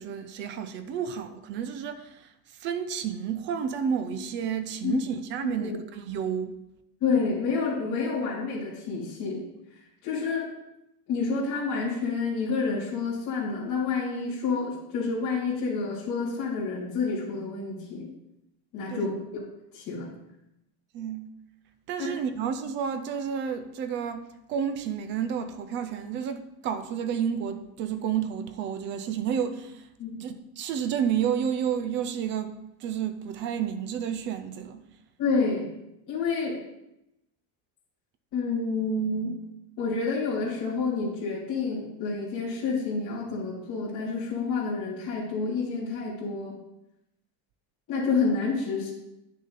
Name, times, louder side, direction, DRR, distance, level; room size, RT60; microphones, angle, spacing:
voice 1, 0.0-2.3 2.6-6.6 18.9-19.1 20.9-21.3 21.9-29.9 30.2-34.8, right 8 dB, 25° right, 0.3 m, -31 dB
voice 2, 5.4-5.8 7.0-9.4 10.0-10.5 11.1-18.1 18.7-19.2 19.7-20.1 30.0-30.1 35.2-35.7 36.1-36.6 38.3-39.3 39.8-46.5 47.9-48.9, left 4 dB, 40° left, 2.9 m, -29 dB
10.0 x 6.5 x 4.0 m
cardioid pair, 170°, 48 cm